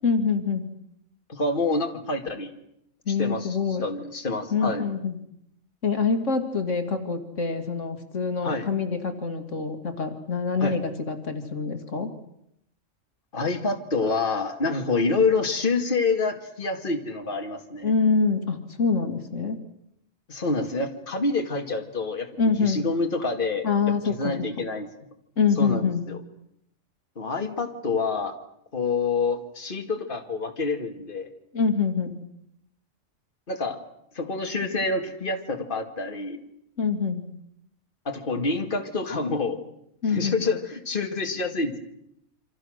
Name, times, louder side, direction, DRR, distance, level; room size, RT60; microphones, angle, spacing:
voice 1, 0.0-0.7 3.1-3.9 4.5-5.2 5.8-12.1 17.8-19.6 22.4-22.8 23.6-24.5 25.4-26.0 31.5-32.2 36.8-37.2 40.0-40.4, left 5 dB, 70° left, 6 dB, 2.4 m, -25 dB
voice 2, 1.3-2.5 3.1-4.9 8.4-8.7 10.6-10.8 13.3-17.9 20.3-22.3 22.6-23.7 24.0-24.9 25.6-26.2 27.2-28.4 28.7-31.3 33.5-33.8 34.1-36.4 38.1-39.6 40.1-41.8, left 3 dB, 40° left, 4 dB, 2.3 m, -27 dB
28.5 x 25.5 x 6.5 m, 0.77 s
omnidirectional pair, 1.3 m